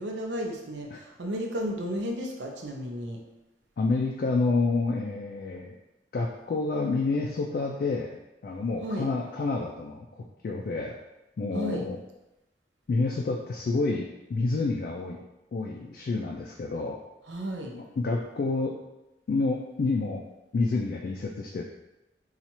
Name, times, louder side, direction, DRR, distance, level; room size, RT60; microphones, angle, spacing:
voice 1, 0.0-3.2 8.8-9.1 11.5-11.9 17.3-17.7, equal, 90° right, 2 dB, 0.6 m, -33 dB
voice 2, 3.8-5.7 6.1-11.0 11.4-12.0 12.9-15.2 15.5-17.0 17.7-18.8 19.3-20.2 20.5-21.6, left 3 dB, 55° left, 1 dB, 0.3 m, -29 dB
4.1 x 2.4 x 2.9 m, 0.97 s
head